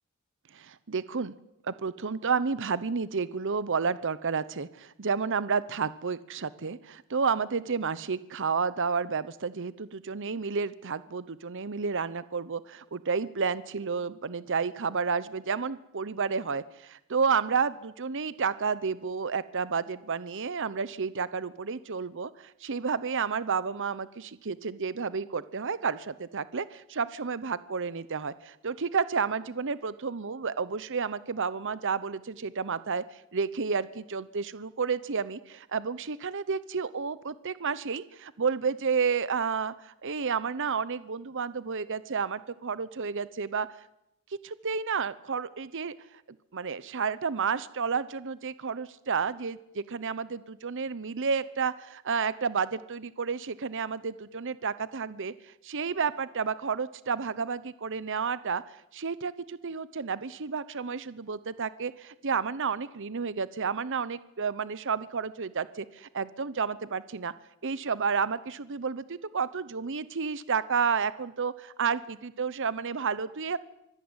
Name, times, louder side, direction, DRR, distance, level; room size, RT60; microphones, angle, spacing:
voice 1, 0.5-1.3 1.6-43.7 44.4-45.9 46.5-67.3 67.6-73.6, right 5 dB, 60° right, 16 dB, 0.9 m, -31 dB
25.0 x 16.0 x 9.8 m, 0.84 s
head